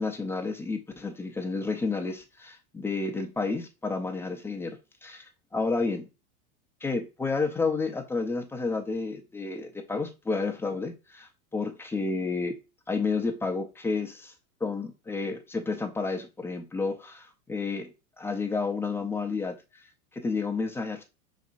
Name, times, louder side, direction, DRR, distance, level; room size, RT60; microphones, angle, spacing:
voice 1, 0.0-6.0 6.8-12.5 12.9-14.3 14.6-19.9 20.1-21.0, left 4 dB, 5° left, 4 dB, 0.4 m, -31 dB
5.1 x 4.0 x 2.4 m, 0.29 s
hypercardioid pair, 110°, 45 cm